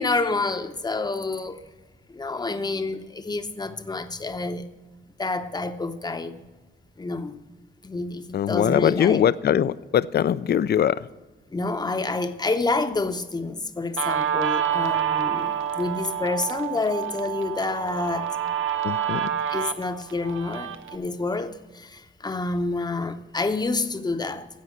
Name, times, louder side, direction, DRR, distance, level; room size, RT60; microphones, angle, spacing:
voice 1, 0.0-1.6 2.1-4.7 5.2-6.4 7.0-7.4 7.8-9.2 11.5-18.4 19.3-24.5, left 3 dB, 20° left, 0.7 m, -28 dB
voice 2, 8.3-11.1 18.8-19.3, left 9 dB, 55° left, 0.4 m, -22 dB
Guitar, 14.0-21.0, right 9 dB, 90° right, 0.7 m, -28 dB
16.0 x 5.4 x 7.4 m
wide cardioid pair, 120°, 20 cm